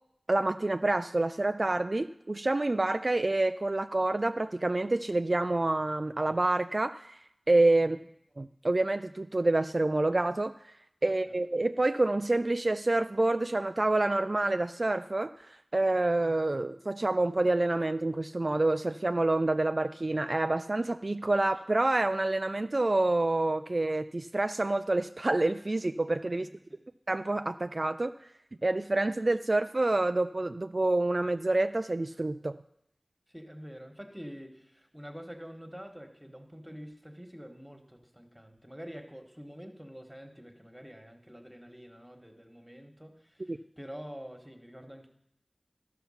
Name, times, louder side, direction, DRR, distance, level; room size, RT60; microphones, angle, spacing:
voice 1, 0.3-7.2 7.5-8.0 8.4-10.7 11.0-26.5 27.1-28.1 28.6-32.6 43.5-43.6, right 2 dB, 55° right, 9 dB, 0.3 m, -27 dB
voice 2, 26.4-26.8 33.3-45.1, equal, 10° right, 4 dB, 1.5 m, -47 dB
13.0 x 5.8 x 5.7 m, 0.77 s
wide cardioid pair, 40°, 0 cm